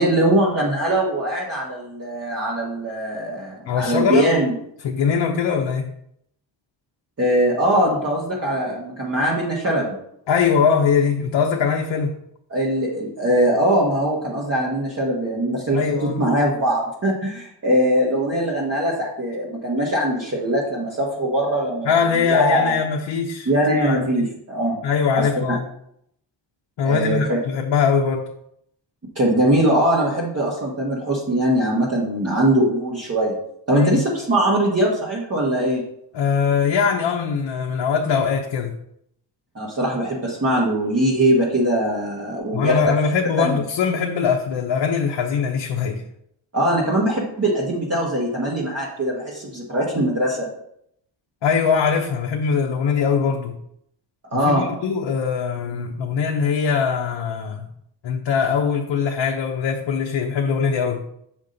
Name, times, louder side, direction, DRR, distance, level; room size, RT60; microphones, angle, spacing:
voice 1, 0.0-4.5 7.2-10.0 12.5-21.9 22.2-22.8 23.4-24.8 25.1-25.3 26.8-27.4 29.1-33.4 33.7-35.8 39.5-42.8 43.4-43.6 46.5-50.5 54.3-54.7, right 1 dB, 35° right, -5 dB, 1.5 m, -21 dB
voice 2, 3.7-4.3 4.8-5.9 10.3-12.1 15.7-16.2 21.9-23.5 23.8-24.3 24.8-25.6 26.8-28.3 33.7-34.0 36.1-38.7 42.5-46.0 51.4-53.6 54.3-57.7 58.0-61.0, left 6 dB, 70° left, 1 dB, 0.9 m, -21 dB
7.2 x 6.0 x 4.0 m, 0.74 s
wide cardioid pair, 125°, 45 cm